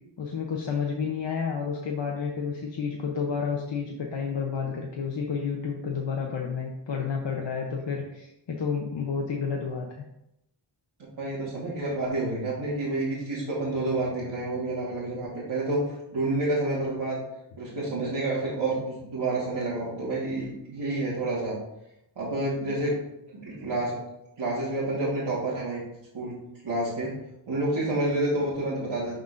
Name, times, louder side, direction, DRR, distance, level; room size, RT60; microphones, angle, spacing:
voice 1, 0.2-10.0, left 6 dB, 75° left, 0 dB, 0.8 m, -30 dB
voice 2, 11.2-17.2 17.6-21.6 22.1-23.0 23.3-24.0 24.4-25.8 26.1-27.2 27.5-29.1, right 2 dB, 90° right, -9 dB, 1.7 m, -29 dB
11.0 x 3.9 x 2.5 m, 0.86 s
wide cardioid pair, 65°, 44 cm